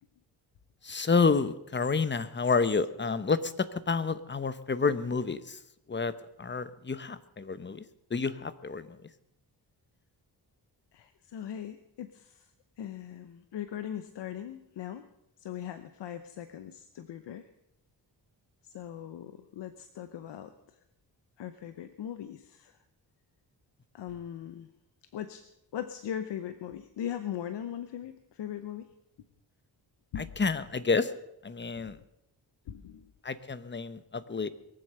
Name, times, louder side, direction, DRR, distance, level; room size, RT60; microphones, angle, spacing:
voice 1, 0.8-5.6 5.9-6.1 6.4-7.8 8.1-9.0 30.2-31.1 31.4-32.0 33.2-34.5, left 4 dB, 25° left, 14 dB, 1.0 m, -29 dB
voice 2, 10.9-12.5 12.8-15.1 15.4-17.5 18.6-20.5 21.4-22.8 23.9-24.7 25.1-28.9 30.1-30.3 31.8-31.9 32.7-33.1, left 10 dB, 85° left, 10 dB, 0.9 m, -40 dB
22.0 x 7.8 x 6.7 m, 0.84 s
cardioid pair, 80°, 41 cm